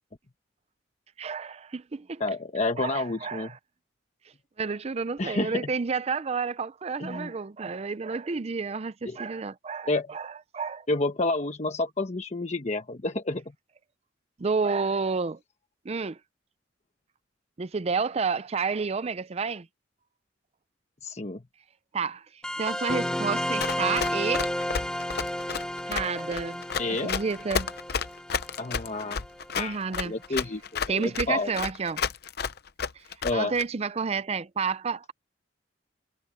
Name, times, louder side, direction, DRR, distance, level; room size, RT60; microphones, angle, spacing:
voice 1, 1.2-2.2 2.8-3.6 4.6-10.9 14.4-15.4 15.8-16.2 17.6-19.7 21.9-24.5 25.8-26.6 27.0-27.7 29.6-30.1 30.9-32.0 33.0-33.1 33.3-35.1, right 5 dB, 35° right, 0.5 m, -30 dB
voice 2, 2.2-3.5 5.2-5.7 7.0-7.3 9.0-9.2 9.8-10.1 10.9-13.4 21.0-21.4 26.8-27.1 28.6-29.2 29.5-29.8 30.0-31.5 33.2-33.5, left 2 dB, 40° left, 1.1 m, -29 dB
sound 1, 22.4-29.5, left 1 dB, 5° left, 0.8 m, -32 dB
Run, 23.6-33.6, left 6 dB, 60° left, 0.7 m, -31 dB
head